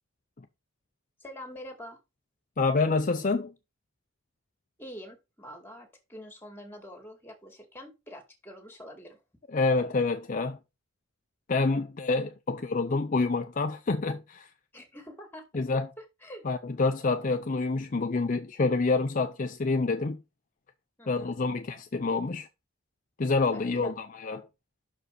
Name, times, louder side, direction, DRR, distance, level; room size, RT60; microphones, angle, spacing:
voice 1, 1.2-2.0 4.8-9.2 14.7-16.4 21.0-21.4 23.5-23.9, equal, 10° left, 2.2 m, -45 dB
voice 2, 2.6-3.5 9.5-10.6 11.5-14.5 15.5-15.9 16.4-20.2 21.1-22.5 23.2-24.5, left 3 dB, 40° left, 0.5 m, -27 dB
6.3 x 5.0 x 6.3 m
head